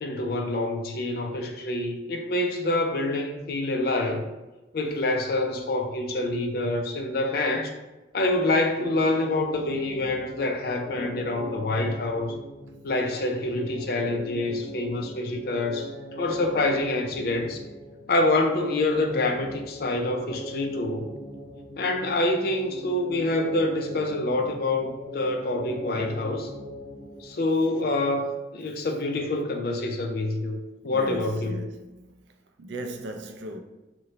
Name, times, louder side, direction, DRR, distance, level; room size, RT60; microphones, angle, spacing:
voice 1, 0.0-4.3 4.7-7.7 8.1-12.4 12.8-17.6 18.1-21.1 21.8-26.5 27.2-30.6 30.8-31.6, left 2 dB, 55° left, 0.4 m, -26 dB
sound 1, 8.8-27.6, equal, 20° left, 1.3 m, -40 dB
voice 2, 30.8-32.1 32.6-33.6, right 1 dB, 75° right, 0.4 m, -37 dB
2.9 x 2.1 x 3.8 m
head